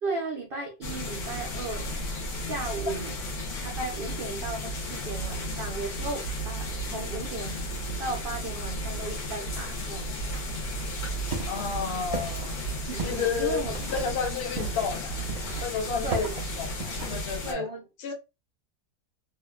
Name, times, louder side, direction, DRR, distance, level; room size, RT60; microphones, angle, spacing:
voice 1, 0.0-2.0 2.4-3.2 3.6-7.6 8.0-10.4 12.9-14.2 14.6-14.7 16.0-16.3 17.4-17.8, right 2 dB, 85° right, 0.4 m, -35 dB
sound 1, 0.8-17.5, equal, 75° left, 1.3 m, -34 dB
sound 2, 11.0-17.4, right 3 dB, 30° right, 0.6 m, -38 dB
voice 2, 11.5-12.6 13.0-13.6 13.9-15.3 15.6-16.3 16.6-17.7 18.0-18.1, left 6 dB, 55° left, 0.7 m, -31 dB
2.9 x 2.2 x 2.2 m
omnidirectional pair, 1.6 m